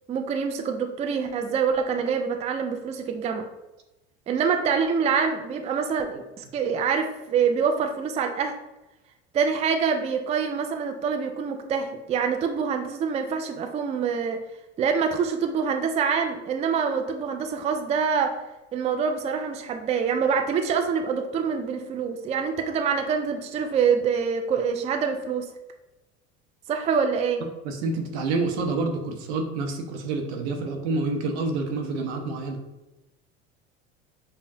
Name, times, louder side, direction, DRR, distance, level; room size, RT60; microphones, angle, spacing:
voice 1, 0.1-3.4 4.3-8.5 9.3-14.4 14.8-18.3 18.7-25.5 26.7-27.4, right 6 dB, 20° right, 5 dB, 0.3 m, -25 dB
voice 2, 27.6-32.6, right 3 dB, 75° right, 4 dB, 0.8 m, -28 dB
5.3 x 2.1 x 2.7 m, 1.0 s
hypercardioid pair, 85°, 33 cm